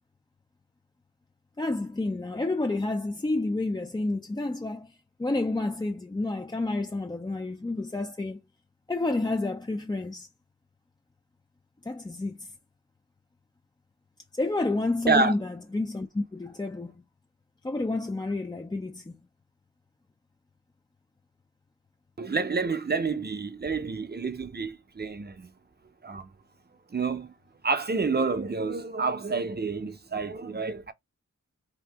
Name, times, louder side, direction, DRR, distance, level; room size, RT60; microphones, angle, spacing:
voice 1, 1.6-4.9 5.2-8.4 8.9-10.3 11.8-12.5 14.4-16.9 17.6-19.2, left 2 dB, 15° left, 0.4 m, -29 dB
voice 2, 22.2-25.5 26.0-26.3 26.9-27.3 27.6-30.9, right 4 dB, 30° right, 0.6 m, -28 dB
2.8 x 2.6 x 3.4 m
wide cardioid pair, 50°, 33 cm